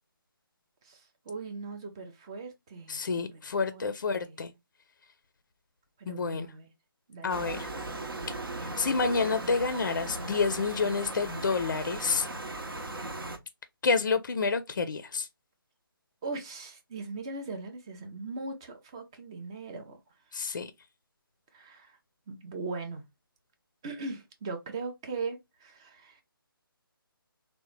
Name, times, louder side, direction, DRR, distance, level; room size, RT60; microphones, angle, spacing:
voice 1, 0.8-3.4 3.7-3.9 4.2-4.4 6.0-6.7 7.1-7.6 16.2-20.0 21.5-22.0 22.3-23.0 23.8-26.2, right 3 dB, 10° right, 0.3 m, -39 dB
voice 2, 2.9-4.5 6.1-6.5 7.2-7.7 8.8-12.3 13.8-15.3 20.3-20.7, left 4 dB, 55° left, 0.4 m, -29 dB
sound 1, 7.3-13.4, right 2 dB, 70° right, 0.8 m, -37 dB
3.6 x 2.1 x 3.1 m
figure-of-eight pair, 150°, 12 cm